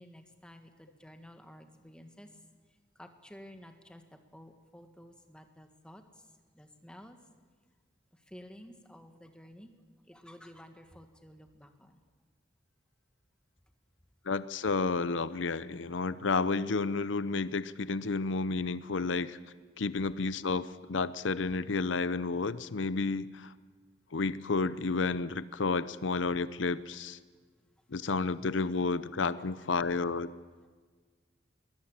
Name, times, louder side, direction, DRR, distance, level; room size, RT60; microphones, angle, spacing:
voice 1, 0.0-2.3 3.0-4.0 4.3-6.0 6.5-7.2 8.3-9.7 10.1-12.0, equal, 5° left, 5 dB, 1.6 m, -52 dB
voice 2, 14.3-19.4 19.8-23.5 24.1-27.2 27.9-30.3, left 4 dB, 80° left, 15 dB, 0.7 m, -31 dB
22.0 x 20.0 x 8.9 m, 1.5 s
head